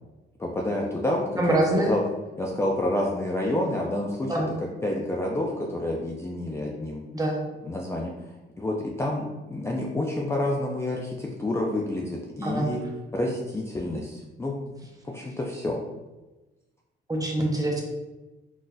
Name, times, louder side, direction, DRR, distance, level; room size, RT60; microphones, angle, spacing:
voice 1, 0.4-2.0 2.4-4.4 4.8-7.0 7.6-8.3 8.6-12.8 13.1-14.6 15.1-15.8, left 1 dB, 15° left, -2 dB, 0.4 m, -28 dB
voice 2, 1.4-1.9 4.3-4.5 7.1-7.4 12.4-12.7 17.1-17.8, right 1 dB, 20° right, -1 dB, 0.8 m, -24 dB
3.8 x 2.6 x 2.3 m, 1.1 s
cardioid pair, 90°, 20 cm